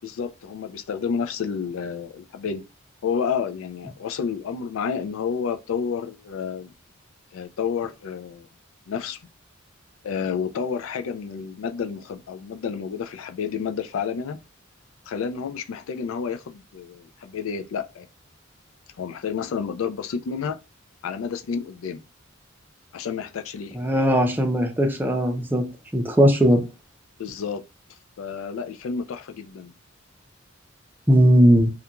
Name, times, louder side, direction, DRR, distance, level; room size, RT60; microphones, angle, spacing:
voice 1, 0.0-2.6 3.0-6.7 7.3-8.5 8.9-9.2 10.0-14.4 15.1-18.1 19.0-20.6 21.0-22.0 22.9-23.9 27.2-27.6 28.2-29.7, left 6 dB, 70° left, 0.3 m, -30 dB
voice 2, 23.7-25.6 25.9-26.6 31.1-31.7, equal, 10° right, 0.4 m, -18 dB
2.4 x 2.2 x 2.8 m
head